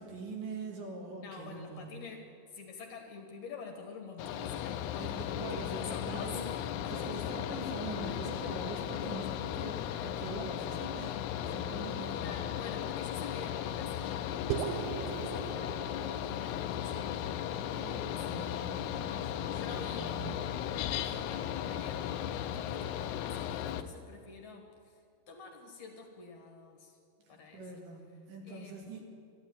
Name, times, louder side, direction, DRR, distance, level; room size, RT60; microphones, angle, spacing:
voice 1, 0.0-1.8 4.9-6.5 6.9-12.4 17.4-20.5 27.2-29.0, right 3 dB, 65° right, 1 dB, 3.5 m, -43 dB
voice 2, 1.2-6.4 6.8-7.2 12.1-17.2 17.8-19.1 19.5-27.0 27.3-27.6 28.4-29.0, left 4 dB, 60° left, 3 dB, 2.6 m, -48 dB
Mechanical fan, 4.2-23.8, left 10 dB, 90° left, 1.7 m, -36 dB
sound 1, 14.5-18.9, right 10 dB, 80° right, 2.2 m, -40 dB
12.5 x 12.5 x 9.5 m, 2.3 s
omnidirectional pair, 4.2 m